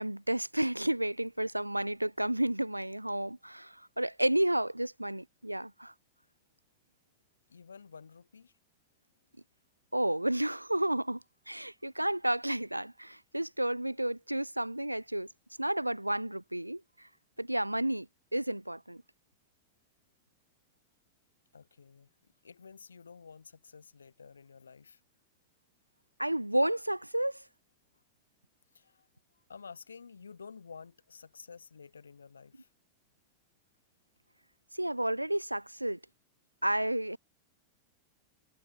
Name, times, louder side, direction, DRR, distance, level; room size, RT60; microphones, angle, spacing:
voice 1, 0.0-5.9 9.9-15.3 15.6-17.1 17.4-19.0 26.2-27.4 34.7-36.0 36.6-37.2, right 1 dB, 85° right, 0.5 m, -31 dB
voice 2, 7.5-8.5 21.5-22.1 22.4-25.0 28.7-29.1 29.5-32.7, left 5 dB, 75° left, 0.9 m, -51 dB
figure-of-eight pair, 90°, 0 cm